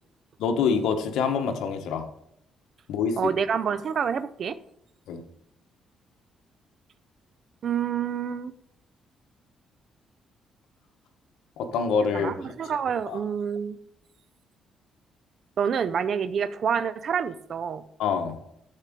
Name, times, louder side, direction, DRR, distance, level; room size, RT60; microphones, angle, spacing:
voice 1, 0.4-2.0 2.9-3.3 5.1-5.2 11.6-12.3 13.1-13.2 18.0-18.4, left 6 dB, 85° left, 6 dB, 1.2 m, -26 dB
voice 2, 3.2-4.6 7.6-8.5 12.1-13.8 15.6-17.8, right 7 dB, 55° right, 15 dB, 0.6 m, -27 dB
13.5 x 4.8 x 3.7 m, 0.74 s
cardioid pair, 90°, 0 cm